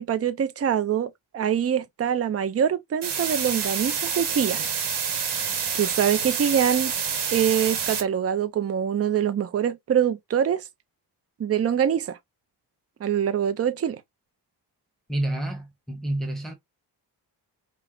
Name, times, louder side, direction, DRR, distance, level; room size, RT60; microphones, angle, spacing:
voice 1, 0.0-4.7 5.7-6.9 7.3-10.6 11.4-12.2 13.0-14.0, right 8 dB, 35° right, 0.5 m, -24 dB
sound 1, 3.0-8.0, right 7 dB, 90° right, 1.2 m, -28 dB
voice 2, 15.1-16.5, right 1 dB, ahead, 0.9 m, -29 dB
4.5 x 2.1 x 3.6 m
wide cardioid pair, 145°, 40 cm